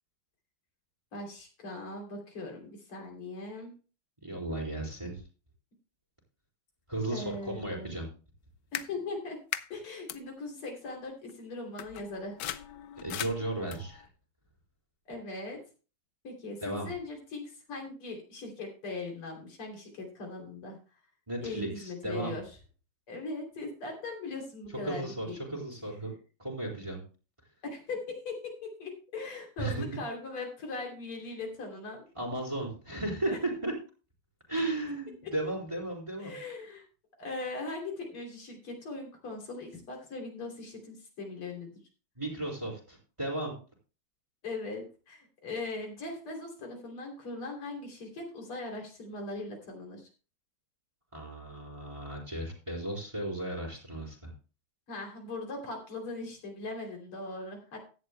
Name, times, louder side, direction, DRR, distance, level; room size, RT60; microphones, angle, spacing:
voice 1, 1.1-3.7 7.1-8.0 8.7-9.4 9.7-12.4 15.1-15.6 16.2-20.8 21.4-22.4 23.1-25.4 27.6-32.1 33.3-33.4 36.2-36.8 37.2-41.7 44.4-50.1 54.9-57.8, left 3 dB, 85° left, 1 dB, 4.1 m, -40 dB
voice 2, 4.2-5.2 6.9-8.1 13.0-14.1 16.6-16.9 21.3-22.3 24.8-26.1 26.4-27.0 29.6-30.0 32.1-33.7 34.5-36.4 42.2-43.5 51.1-54.3, right 2 dB, 15° right, -2 dB, 3.9 m, -35 dB
sound 1, 8.7-8.9 9.5-9.7 10.1-10.2 11.3-11.4 11.8-14.1, left 11 dB, 70° left, 1.1 m, -38 dB
16.0 x 11.0 x 2.2 m, 0.35 s
omnidirectional pair, 2.4 m